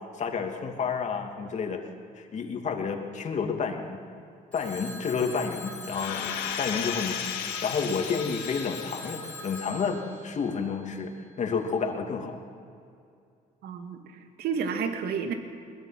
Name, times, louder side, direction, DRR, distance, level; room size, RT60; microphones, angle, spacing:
voice 1, 0.2-1.8 2.2-4.0 4.5-11.1 11.4-12.4, left 5 dB, 45° left, 3 dB, 2.7 m, -30 dB
Telephone, 4.5-11.3, left 2 dB, 5° left, 5.0 m, -42 dB
sound 1, 5.9-9.3 9.7-9.8, left 9 dB, 90° left, 1.9 m, -35 dB
voice 2, 13.6-15.3, right 6 dB, 70° right, 5 dB, 2.1 m, -31 dB
22.0 x 20.5 x 6.0 m, 2.4 s
cardioid pair, 110°, 17 cm